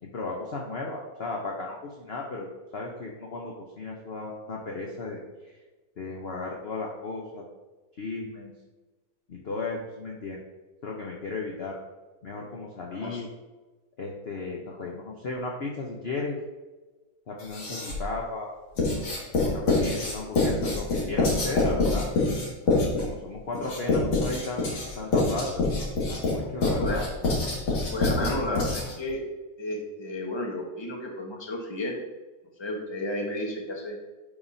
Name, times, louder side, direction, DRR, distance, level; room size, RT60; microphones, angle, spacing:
voice 1, 0.0-2.5 2.7-5.2 5.5-5.6 6.0-7.5 8.0-8.5 9.3-10.4 10.8-11.8 12.2-13.3 14.0-16.4 17.3-18.5 19.5-22.2 23.0-24.6 25.0-25.6 26.1-27.1 28.0-28.7, left 3 dB, 60° left, -1 dB, 0.6 m, -35 dB
voice 2, 12.9-13.2 14.7-14.8 26.8-27.0 27.9-29.2 29.6-32.0 32.6-34.0, left 1 dB, 20° left, 0 dB, 0.8 m, -32 dB
Writing, 17.4-18.1 18.8-29.1, left 3 dB, 85° left, 2.6 m, -26 dB
10.0 x 5.1 x 2.7 m, 1.2 s
omnidirectional pair, 2.1 m